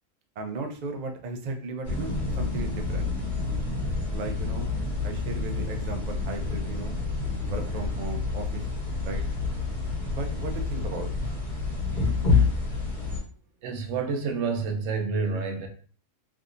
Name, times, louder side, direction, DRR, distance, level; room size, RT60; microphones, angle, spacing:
voice 1, 0.4-3.1 4.1-4.7 5.0-7.0 7.4-8.6 9.0-9.2 10.1-11.1, right 3 dB, 60° right, 4 dB, 0.4 m, -36 dB
sound 1, 1.8-13.2, left 4 dB, 40° left, 1.1 m, -28 dB
voice 2, 13.6-15.7, right 5 dB, 75° right, 3 dB, 1.0 m, -28 dB
3.5 x 2.7 x 2.4 m, 0.42 s
omnidirectional pair, 1.3 m